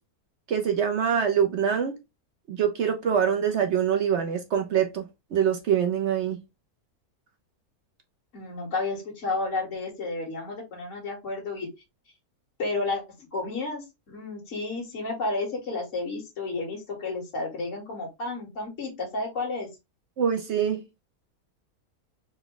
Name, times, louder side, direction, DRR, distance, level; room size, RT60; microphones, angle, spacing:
voice 1, 0.5-2.0 2.5-6.4 20.2-20.8, right 8 dB, 60° right, 0.8 m, -24 dB
voice 2, 8.3-11.7 12.6-13.0 13.3-19.7, left 3 dB, 55° left, 1.9 m, -31 dB
4.0 x 2.2 x 3.8 m
omnidirectional pair, 1.6 m